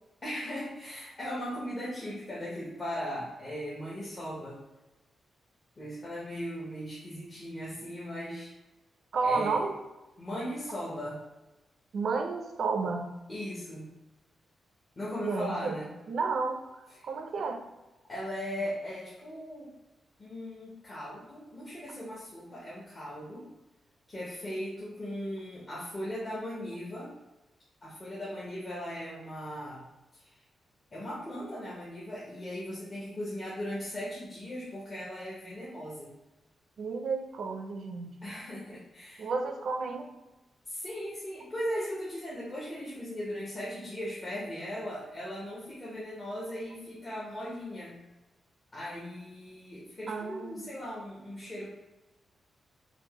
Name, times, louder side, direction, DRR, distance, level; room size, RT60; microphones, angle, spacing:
voice 1, 0.2-4.6 5.8-8.5 9.2-9.7 10.2-11.2 13.3-13.9 15.0-15.9 17.0-17.1 18.1-19.7 20.2-23.5 24.1-27.1 27.8-29.8 30.1-30.3 30.9-36.1 38.2-39.3 40.6-48.0 48.7-51.7, equal, 25° left, -7 dB, 0.9 m, -38 dB
voice 2, 9.1-9.7 11.9-13.1 15.2-15.8 16.1-16.6 17.0-17.6 36.8-38.2 39.2-40.1 50.1-50.6, right 4 dB, 60° right, 4 dB, 0.5 m, -31 dB
4.4 x 2.6 x 3.0 m, 1.0 s
wide cardioid pair, 165°, 0 cm